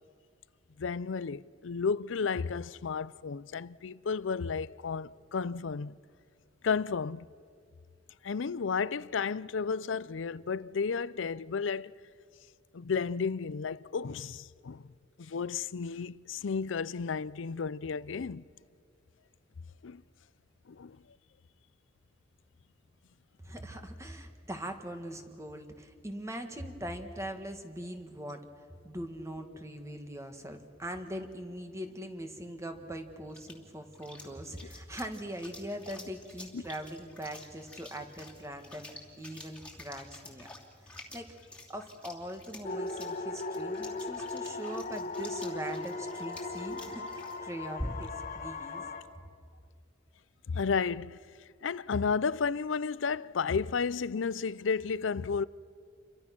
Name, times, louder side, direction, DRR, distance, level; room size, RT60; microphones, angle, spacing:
voice 1, 0.8-6.0 6.6-7.3 8.2-11.9 12.7-14.9 15.2-18.4 19.8-20.0 20.7-21.0 36.5-36.6 50.5-51.2 51.6-55.4, left 5 dB, 80° left, 0.5 m, -32 dB
voice 2, 23.4-40.5 40.8-41.3 41.7-48.9, right 1 dB, 15° right, 1.8 m, -41 dB
sound 1, 32.7-48.3, left 1 dB, 5° left, 2.7 m, -48 dB
sound 2, 42.6-49.0, left 3 dB, 45° left, 1.7 m, -38 dB
29.0 x 24.0 x 6.1 m
head